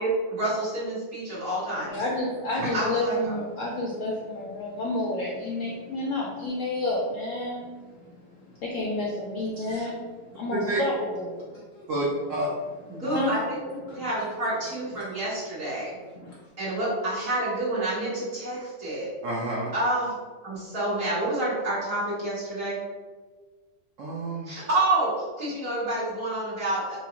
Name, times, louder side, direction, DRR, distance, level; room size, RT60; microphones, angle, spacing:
voice 1, 0.0-2.0 2.7-3.3 9.7-9.9 12.9-16.0 16.6-19.1 19.7-20.1 20.4-22.8 24.5-25.1 25.4-27.0, right 1 dB, 50° right, -11 dB, 1.9 m, -28 dB
voice 2, 1.8-11.9 12.9-13.4 13.9-14.1 14.9-15.0 16.2-16.4, left 2 dB, 70° left, -3 dB, 0.7 m, -30 dB
voice 3, 11.9-12.5 19.2-19.7 24.0-24.5, right 2 dB, 70° right, -4 dB, 0.7 m, -29 dB
4.6 x 2.0 x 2.8 m, 1.4 s
omnidirectional pair, 1.8 m